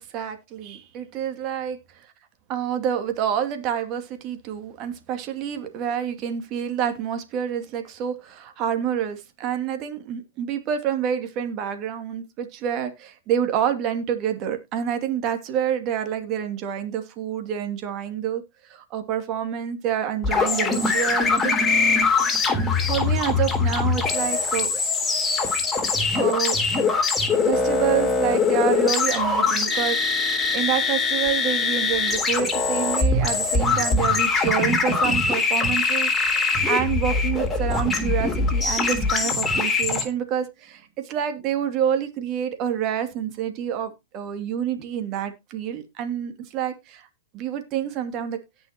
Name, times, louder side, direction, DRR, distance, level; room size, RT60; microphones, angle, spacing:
voice 1, 0.0-1.8 2.5-21.6 22.6-24.7 26.1-26.6 27.4-47.1 47.3-48.4, right 9 dB, 40° right, 2.5 m, -28 dB
sound 1, 20.2-40.0, left 4 dB, 15° left, 3.6 m, -22 dB
17.5 x 6.3 x 2.9 m
hypercardioid pair, 125°, 0 cm